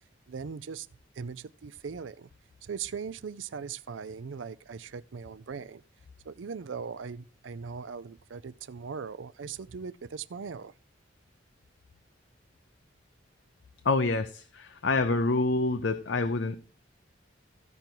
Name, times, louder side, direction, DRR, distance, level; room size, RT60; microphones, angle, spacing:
voice 1, 0.3-0.9 1.1-2.3 2.6-5.8 6.3-10.7, right 6 dB, 80° right, 0.5 m, -39 dB
voice 2, 13.8-16.6, left 3 dB, 70° left, 0.6 m, -27 dB
14.5 x 5.3 x 4.5 m
head